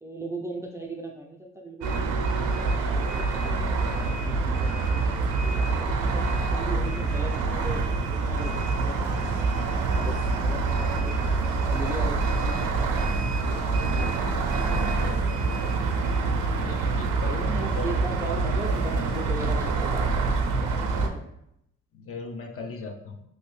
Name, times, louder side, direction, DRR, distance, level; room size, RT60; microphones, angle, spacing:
voice 1, 0.0-5.0 5.4-9.1 9.7-14.2 14.5-15.2 17.3-20.3 20.6-21.2, right 2 dB, 10° right, 1 dB, 0.3 m, -39 dB
sound 1, 1.8-21.1, right 3 dB, 80° right, 0.5 m, -26 dB
voice 2, 16.6-17.9 21.9-23.2, left 2 dB, 50° left, 3 dB, 0.6 m, -37 dB
3.0 x 2.6 x 3.1 m, 0.78 s
cardioid pair, 90°, 30 cm